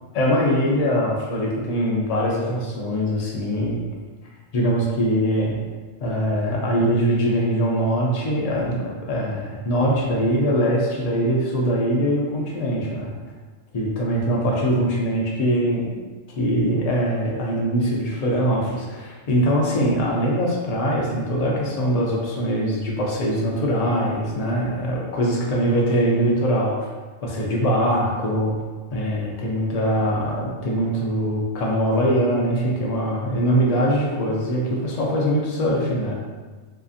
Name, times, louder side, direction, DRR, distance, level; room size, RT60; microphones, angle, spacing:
voice 1, 0.1-3.9 4.5-5.6 6.0-13.1 13.7-16.0 16.4-26.9 27.2-28.5 28.9-36.1, equal, 75° left, -3 dB, 0.3 m, -22 dB
2.7 x 2.5 x 2.4 m, 1.4 s
omnidirectional pair, 1.2 m